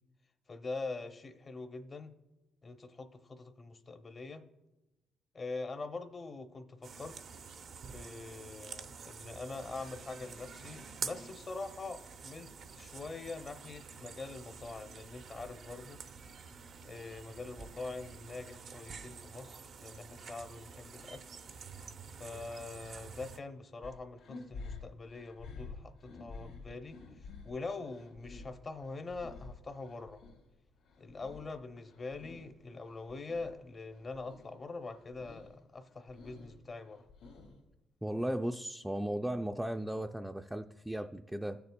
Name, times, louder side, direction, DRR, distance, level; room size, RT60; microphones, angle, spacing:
voice 1, 0.5-2.1 2.6-4.4 5.3-7.2 7.9-16.0 16.8-21.2 22.2-30.2 31.0-37.0, left 3 dB, 35° left, 8 dB, 0.6 m, -44 dB
sound 1, 6.8-23.4, right 5 dB, 60° right, 0.6 m, -48 dB
sound 2, 23.8-30.4 30.8-32.6 32.8-33.6 33.9-34.5 34.9-35.5 35.9-37.7, left 4 dB, 85° left, 2.1 m, -50 dB
voice 2, 38.0-41.6, right 1 dB, 5° right, 5 dB, 0.3 m, -36 dB
15.5 x 6.9 x 2.2 m, 1.0 s
cardioid pair, 90°, 0 cm